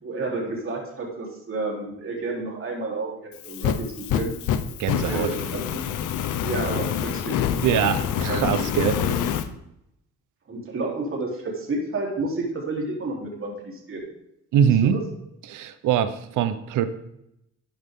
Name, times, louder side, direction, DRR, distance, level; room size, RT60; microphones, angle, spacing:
voice 1, 0.0-4.4 5.0-5.8 6.4-7.4 8.2-9.3 10.5-14.1 14.6-15.1, right 2 dB, 45° right, -1 dB, 3.8 m, -31 dB
Fire, 3.3-9.5, left 9 dB, 85° left, 1.0 m, -26 dB
voice 2, 4.8-5.3 7.6-9.0 14.5-15.0 15.5-16.9, right 9 dB, 85° right, 11 dB, 1.0 m, -22 dB
13.0 x 9.5 x 3.8 m, 0.80 s
cardioid pair, 90°, 30 cm